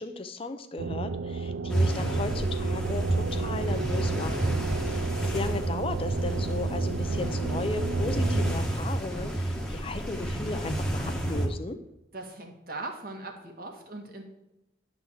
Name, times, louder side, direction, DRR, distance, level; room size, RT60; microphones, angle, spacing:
voice 1, 0.0-4.6 4.9-11.8, left 3 dB, 30° left, 9 dB, 0.5 m, -36 dB
sound 1, 0.8-8.5, right 4 dB, 80° right, 0.4 m, -32 dB
sound 2, 1.7-11.5, right 1 dB, 5° left, 1.1 m, -30 dB
voice 2, 12.1-14.2, right 2 dB, 50° right, 2 dB, 1.7 m, -39 dB
11.0 x 3.9 x 7.4 m, 0.94 s
head